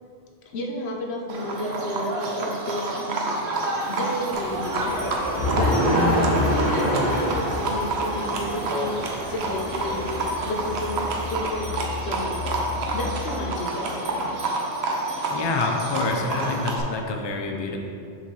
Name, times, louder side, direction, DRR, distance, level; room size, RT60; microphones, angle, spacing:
voice 1, 0.4-3.1 3.9-5.1 5.5-14.4 16.3-16.5, left 1 dB, 85° left, 1 dB, 1.0 m, -32 dB
Livestock farm animals working animals, 1.3-16.8, right 2 dB, 90° right, 1.0 m, -28 dB
sound 1, 3.8-11.3, right 2 dB, 55° right, 0.8 m, -41 dB
sound 2, 4.3-13.3, left 1 dB, 55° left, 1.4 m, -28 dB
voice 2, 15.3-17.8, left 3 dB, 35° left, 2 dB, 0.4 m, -27 dB
6.8 x 4.9 x 3.2 m, 2.4 s
omnidirectional pair, 1.1 m